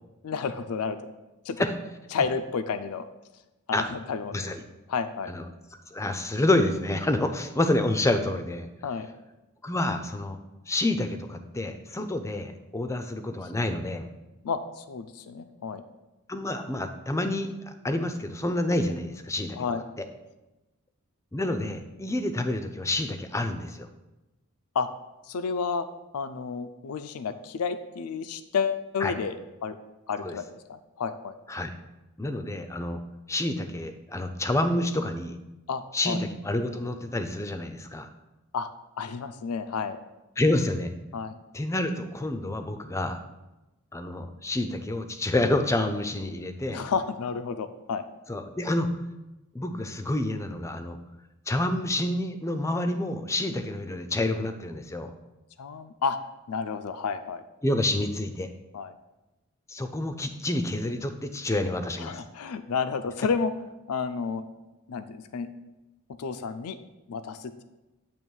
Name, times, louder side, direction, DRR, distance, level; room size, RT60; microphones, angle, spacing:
voice 1, 0.2-1.0 1.5-1.6 2.1-3.1 3.7-4.4 4.9-5.3 8.8-9.1 13.4-13.5 14.4-15.8 19.5-19.8 24.7-24.9 25.3-25.9 26.1-29.8 30.1-31.3 35.7-36.2 38.5-38.7 39.0-40.0 41.1-41.4 46.7-48.1 55.6-56.2 56.5-57.4 58.7-58.9 62.0-63.5 63.9-64.5 64.9-65.5 66.1-66.8 67.1-67.6, left 5 dB, 80° left, 10 dB, 0.4 m, -31 dB
voice 2, 5.9-8.7 9.6-10.4 10.7-14.1 16.3-17.5 17.8-19.6 20.0-20.1 21.3-23.9 29.0-29.1 30.2-30.4 31.5-31.7 32.2-33.0 33.3-35.4 35.9-38.1 40.4-40.9 41.5-43.2 43.9-46.8 48.3-48.9 49.5-51.0 51.5-55.1 57.6-58.5 59.7-62.2, left 1 dB, 15° left, 8 dB, 0.4 m, -28 dB
8.8 x 3.0 x 6.3 m, 1.0 s
head